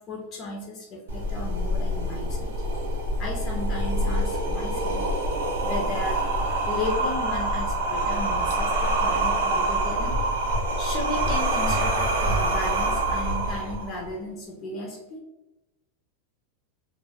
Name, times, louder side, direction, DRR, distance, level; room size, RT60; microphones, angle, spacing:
voice 1, 0.0-2.5 3.2-5.1 5.6-6.2 6.7-10.2 10.8-15.2, left 2 dB, 35° left, -2 dB, 0.5 m, -35 dB
sound 1, 1.1-14.1, right 1 dB, 90° right, 0.5 m, -26 dB
2.1 x 2.0 x 3.4 m, 0.98 s
supercardioid pair, 140°, 0 cm